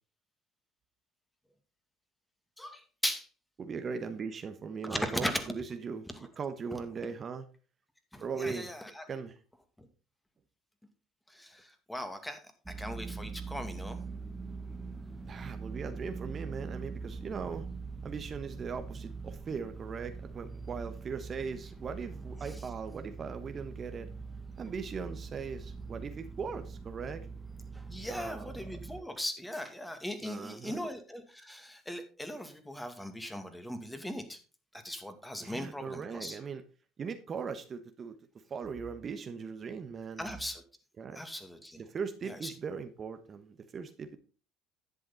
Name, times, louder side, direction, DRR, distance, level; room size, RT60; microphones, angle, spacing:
voice 1, 2.6-3.3 4.8-5.5 6.1-6.2 8.1-9.0 9.8-9.9 11.3-12.4 12.7-14.0 22.4-22.6 27.9-34.4 34.8-36.4 40.2-40.6 41.1-41.8 42.2-42.5, equal, 5° left, 7 dB, 2.3 m, -38 dB
voice 2, 3.6-7.4 8.2-8.7 9.1-9.4 15.3-17.7 18.0-24.1 24.6-27.3 28.0-28.5 30.2-30.9 35.4-36.6 37.0-38.2 38.5-40.3 41.0-41.2 41.8-44.2, right 5 dB, 40° right, 8 dB, 1.2 m, -39 dB
sound 1, 12.7-29.0, right 4 dB, 15° right, 1.2 m, -43 dB
11.0 x 7.8 x 4.2 m, 0.35 s
hypercardioid pair, 70°, 0 cm